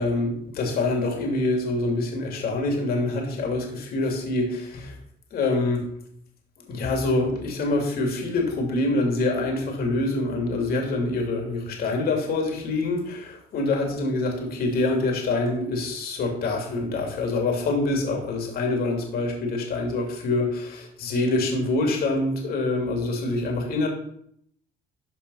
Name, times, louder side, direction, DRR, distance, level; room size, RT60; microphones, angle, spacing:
voice 1, 0.0-4.9 5.3-5.8 6.7-23.9, left 2 dB, 65° left, 2 dB, 2.7 m, -25 dB
13.0 x 4.3 x 5.5 m, 0.69 s
cardioid pair, 110°, 17 cm